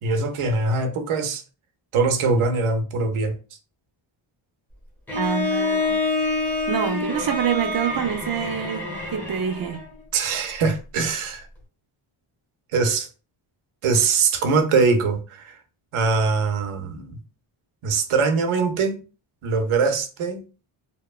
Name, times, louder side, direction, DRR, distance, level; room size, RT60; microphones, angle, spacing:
voice 1, 0.0-1.4 1.9-3.4 10.1-11.5 12.7-13.1 13.8-15.6 15.9-17.2 17.8-19.0 19.4-20.4, right 4 dB, 85° right, 0.7 m, -22 dB
Bowed string instrument, 5.1-9.9, left 3 dB, 5° left, 0.8 m, -27 dB
voice 2, 5.1-6.0 6.7-9.8, right 8 dB, 50° right, 0.4 m, -26 dB
2.9 x 2.1 x 2.3 m
wide cardioid pair, 160°, 49 cm